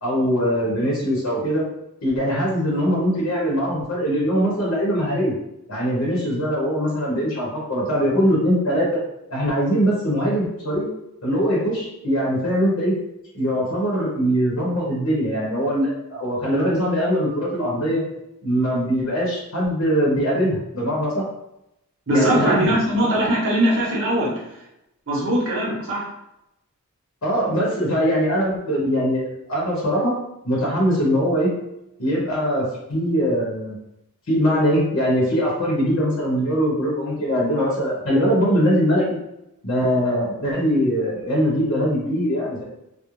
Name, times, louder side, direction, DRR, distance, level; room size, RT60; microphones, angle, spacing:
voice 1, 0.0-1.6 2.0-5.4 5.7-9.0 9.3-10.9 11.2-12.9 13.3-18.0 18.4-21.2 22.1-22.8 27.2-30.1 30.4-31.5 32.0-33.8 34.3-39.2 39.6-42.6, equal, 65° left, -5 dB, 0.7 m, -21 dB
voice 2, 22.1-24.4 25.1-26.1, right 1 dB, 60° right, -5 dB, 0.9 m, -21 dB
2.4 x 2.0 x 3.0 m, 0.85 s
head